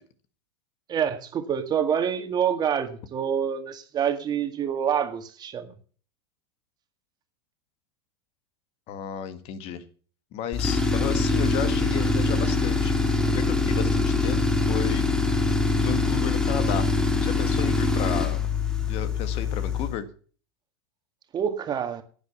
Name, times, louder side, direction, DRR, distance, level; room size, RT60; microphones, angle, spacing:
voice 1, 0.9-5.7 21.3-22.0, right 8 dB, 30° right, 8 dB, 2.0 m, -27 dB
voice 2, 8.9-9.8 10.3-12.9 13.2-14.4 14.7-15.0 15.8-16.9 17.2-18.5 18.9-20.1, left 9 dB, 50° left, 11 dB, 1.7 m, -33 dB
Tools, 10.5-20.0, left 3 dB, 5° left, 2.2 m, -24 dB
11.0 x 8.8 x 7.1 m, 0.42 s
hypercardioid pair, 95°, 13 cm